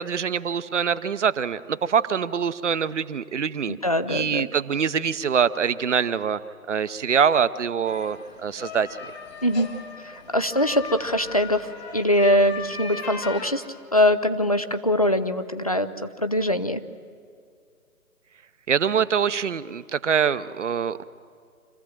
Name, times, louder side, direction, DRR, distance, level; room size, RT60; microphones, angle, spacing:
voice 1, 0.0-3.8 4.1-6.4 6.7-8.9 18.7-21.0, right 7 dB, 50° right, 14 dB, 0.8 m, -24 dB
voice 2, 3.7-4.5 9.4-9.7 10.0-13.6 13.9-16.8, left 1 dB, 25° left, 10 dB, 0.4 m, -23 dB
sound 1, 7.8-13.5, left 5 dB, 45° left, 2.2 m, -38 dB
26.0 x 15.0 x 7.5 m, 2.3 s
figure-of-eight pair, 145°, 45 cm